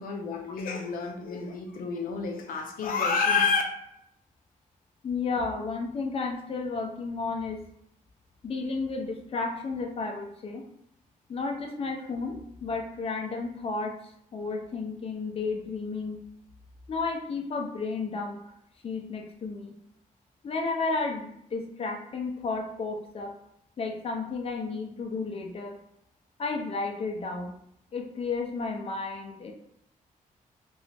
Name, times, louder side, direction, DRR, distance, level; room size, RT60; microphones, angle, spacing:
voice 1, 0.0-3.6, left 5 dB, 85° left, 2 dB, 0.5 m, -28 dB
voice 2, 5.0-7.6 8.4-10.6 11.3-14.0 14.3-16.2 16.9-18.4 18.8-19.7 20.4-23.3 23.8-25.8 26.4-27.5 27.9-29.5, left 4 dB, 45° left, 2 dB, 0.6 m, -32 dB
3.0 x 2.6 x 3.3 m, 0.75 s
cardioid pair, 105°, 14 cm